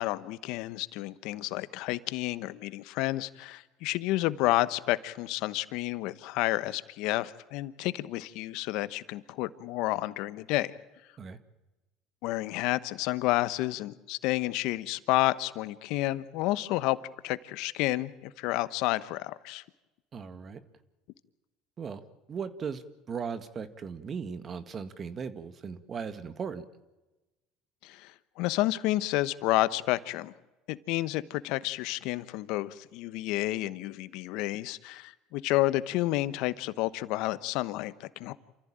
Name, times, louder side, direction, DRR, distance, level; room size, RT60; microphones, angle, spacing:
voice 1, 0.0-10.7 12.2-17.0 17.2-19.6 27.8-30.3 30.7-38.3, left 17 dB, 70° left, 15 dB, 1.0 m, -30 dB
voice 2, 20.1-20.6 21.8-22.0 22.3-22.8 23.1-26.7, right 6 dB, 40° right, 11 dB, 1.9 m, -37 dB
28.0 x 14.5 x 8.9 m, 1.1 s
supercardioid pair, 90°, 0 cm